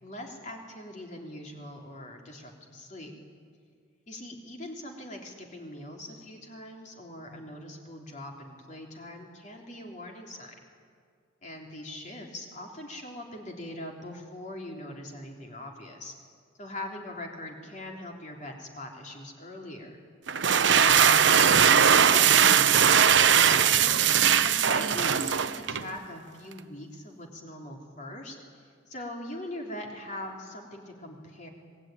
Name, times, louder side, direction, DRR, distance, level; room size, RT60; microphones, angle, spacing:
voice 1, 0.0-3.1 4.1-10.5 11.4-16.1 16.6-20.0 20.7-24.1 24.4-31.5, left 1 dB, 40° left, 0 dB, 3.5 m, -41 dB
sound 1, 20.3-25.9, right 8 dB, 75° right, 0.9 m, -20 dB
27.0 x 19.5 x 9.3 m, 2.1 s
head